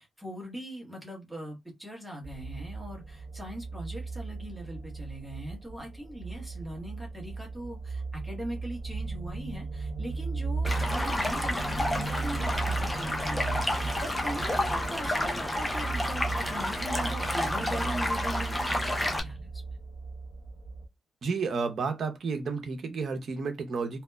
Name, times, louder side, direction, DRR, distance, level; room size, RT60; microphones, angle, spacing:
voice 1, 0.0-19.6, right 1 dB, 5° right, 1.0 m, -40 dB
sound 1, 2.2-20.9, right 3 dB, 50° left, 0.9 m, -36 dB
Stream, 10.6-19.2, left 1 dB, 10° left, 0.6 m, -30 dB
voice 2, 21.2-24.0, right 4 dB, 60° right, 0.6 m, -31 dB
2.8 x 2.1 x 2.2 m
cardioid pair, 105°, 0 cm